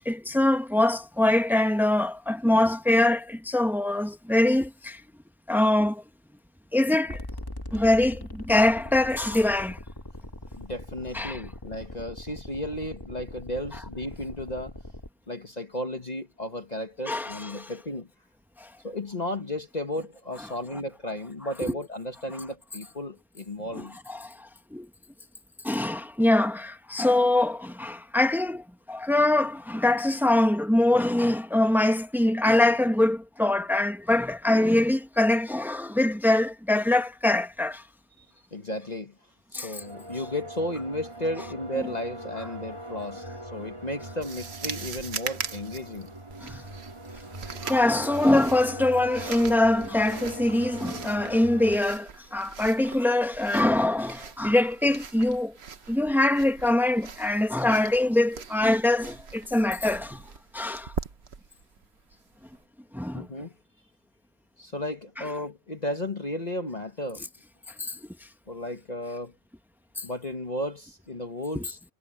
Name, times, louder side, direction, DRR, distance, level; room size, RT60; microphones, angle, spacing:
voice 1, 0.0-5.0 5.5-6.0 6.7-7.2 7.7-9.8 11.1-11.4 17.1-17.6 18.6-18.7 21.6-21.8 23.7-24.9 25.6-37.8 39.5-39.8 46.4-46.6 47.6-55.5 55.9-60.2 60.5-60.9 62.9-63.3 67.8-68.1 70.0-70.1 71.5-71.7, left 1 dB, ahead, 1.5 m, -24 dB
sound 1, 7.1-15.1, left 1 dB, 20° left, 2.0 m, -41 dB
voice 2, 10.6-14.8 15.3-18.1 18.8-24.0 38.2-38.3 38.5-39.1 39.5-46.1 63.1-63.5 64.6-67.2 68.5-69.3 70.0-71.8, left 1 dB, 35° left, 1.4 m, -34 dB
sound 2, 39.8-51.8, right 1 dB, 25° right, 3.0 m, -41 dB
sound 3, 44.2-62.6, right 6 dB, 60° right, 1.4 m, -41 dB
omnidirectional pair, 1.3 m